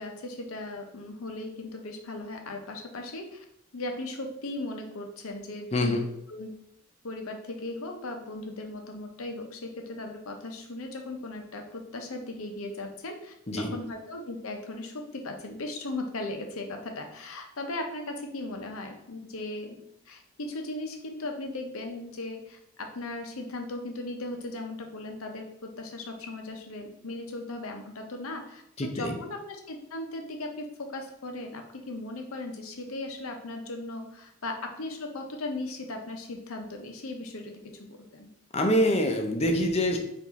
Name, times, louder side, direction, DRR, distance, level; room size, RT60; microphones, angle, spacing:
voice 1, 0.0-3.4 3.7-6.5 7.0-19.8 20.1-38.3, left 2 dB, 85° left, 4 dB, 0.8 m, -37 dB
voice 2, 5.7-6.1 13.5-13.7 28.8-29.2 38.5-40.0, left 1 dB, 30° left, 3 dB, 0.6 m, -25 dB
4.7 x 2.6 x 4.0 m, 0.75 s
head